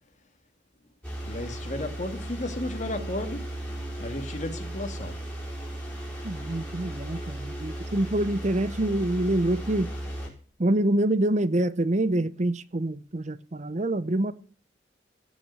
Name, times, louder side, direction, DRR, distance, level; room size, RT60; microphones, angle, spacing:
sound 1, 1.0-10.3, right 1 dB, 10° left, 5.0 m, -36 dB
voice 1, 1.3-3.5 4.0-5.2, left 1 dB, 40° left, 2.2 m, -34 dB
voice 2, 6.2-9.9 10.6-14.3, right 1 dB, 40° right, 0.7 m, -26 dB
16.5 x 6.1 x 9.6 m
head